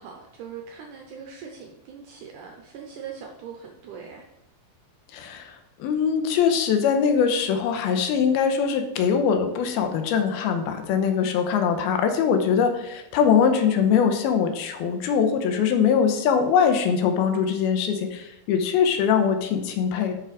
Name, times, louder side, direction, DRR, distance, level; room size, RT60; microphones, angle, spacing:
voice 1, 0.0-4.3, right 7 dB, 80° right, 2 dB, 1.8 m, -41 dB
voice 2, 5.1-20.1, left 7 dB, 85° left, 7 dB, 2.7 m, -22 dB
7.3 x 5.7 x 4.8 m, 0.89 s
omnidirectional pair, 4.4 m